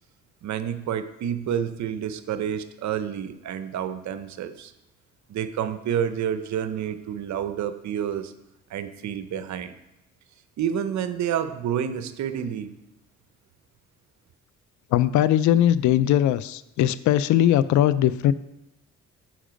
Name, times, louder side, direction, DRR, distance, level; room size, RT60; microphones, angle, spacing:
voice 1, 0.4-4.7 5.3-8.3 8.7-9.8 10.6-12.8, right 9 dB, 65° right, 11 dB, 0.7 m, -29 dB
voice 2, 14.9-18.3, left 12 dB, 75° left, 16 dB, 0.4 m, -20 dB
10.0 x 4.8 x 5.1 m, 0.89 s
cardioid pair, 90°, 30 cm